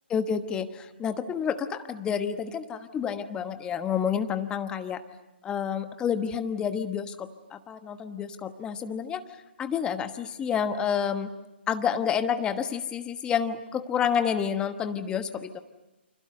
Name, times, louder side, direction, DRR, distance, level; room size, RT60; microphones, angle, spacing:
voice 1, 0.1-5.0 5.4-9.2 9.6-11.3 11.7-15.6, left 7 dB, 15° left, 10 dB, 1.2 m, -29 dB
29.0 x 26.5 x 6.7 m, 1.0 s
figure-of-eight pair, 135°, 6 cm